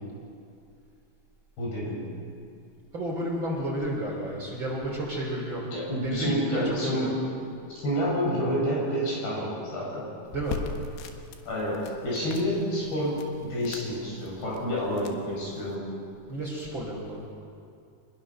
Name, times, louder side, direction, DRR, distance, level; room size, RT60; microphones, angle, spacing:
voice 1, 1.6-2.1 5.7-7.2 7.7-10.1 11.5-15.9, equal, 65° left, -5 dB, 9.0 m, -29 dB
voice 2, 2.9-5.6 6.0-7.2 10.3-10.6 16.3-17.2, equal, 30° right, -2 dB, 3.7 m, -31 dB
sound 1, 10.3-15.8, left 5 dB, 90° left, 3.6 m, -41 dB
26.0 x 20.5 x 6.2 m, 2.5 s
omnidirectional pair, 4.8 m